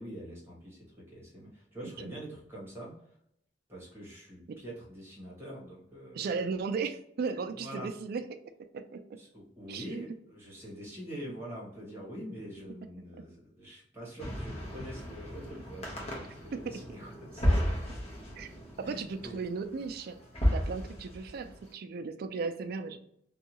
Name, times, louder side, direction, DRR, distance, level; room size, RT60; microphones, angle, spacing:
voice 1, 0.0-3.1 3.7-6.4 7.6-7.9 9.2-17.7 18.8-19.4, equal, 15° right, -5 dB, 1.2 m, -45 dB
voice 2, 6.1-8.3 8.7-9.2 9.7-10.0 16.5-16.8 18.4-18.5 18.8-20.2 20.5-23.0, right 5 dB, 55° right, 8 dB, 0.3 m, -36 dB
sound 1, 14.2-21.6, equal, 35° left, 0.8 m, -33 dB
2.6 x 2.3 x 2.9 m, 0.73 s
head